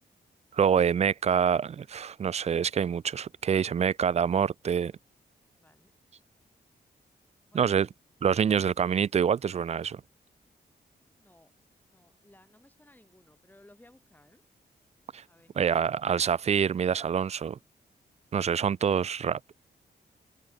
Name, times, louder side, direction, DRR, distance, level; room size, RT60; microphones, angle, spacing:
voice 1, 0.5-4.9 7.5-7.9 8.2-10.0 15.1-15.2 15.6-17.6 18.3-19.4, right 7 dB, 40° right, 0.3 m, -26 dB
voice 2, 5.6-5.9 7.5-7.9 10.9-11.5 11.9-14.4 15.3-15.5 18.5-18.7, left 1 dB, 10° left, 4.8 m, -59 dB
open air
cardioid pair, 90°, 18 cm